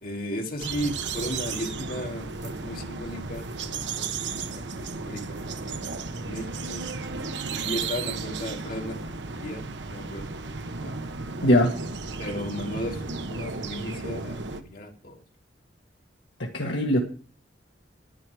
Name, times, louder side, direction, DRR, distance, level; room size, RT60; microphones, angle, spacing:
voice 1, 0.0-4.4 4.8-6.8 7.5-11.0 12.2-15.2, equal, 50° left, 1 dB, 2.6 m, -36 dB
sound 1, 0.6-14.6, right 4 dB, 70° right, 1.2 m, -34 dB
voice 2, 11.4-11.7 16.4-17.0, left 1 dB, 75° left, 0 dB, 1.8 m, -21 dB
11.0 x 11.0 x 5.0 m, 0.41 s
head